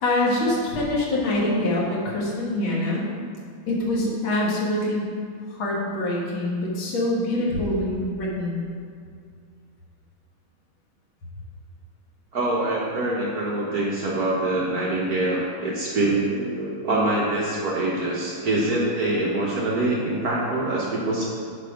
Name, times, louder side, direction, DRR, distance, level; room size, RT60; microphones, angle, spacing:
voice 1, 0.0-3.0 3.7-5.1 5.5-8.6, left 1 dB, 70° left, -4 dB, 2.3 m, -24 dB
voice 2, 12.3-21.3, right 2 dB, 55° right, -5 dB, 1.4 m, -24 dB
9.0 x 4.8 x 5.1 m, 2.3 s
omnidirectional pair, 2.2 m